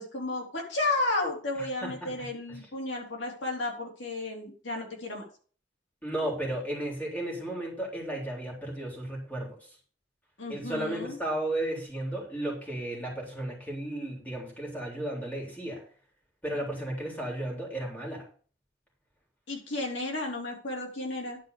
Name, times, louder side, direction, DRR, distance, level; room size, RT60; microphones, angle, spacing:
voice 1, 0.0-5.2 10.4-11.2 19.5-21.4, left 2 dB, 80° left, 0 dB, 3.3 m, -33 dB
voice 2, 6.0-9.5 10.5-15.8 16.4-18.2, right 1 dB, 10° left, -2 dB, 3.7 m, -34 dB
11.0 x 5.2 x 6.6 m, 0.42 s
head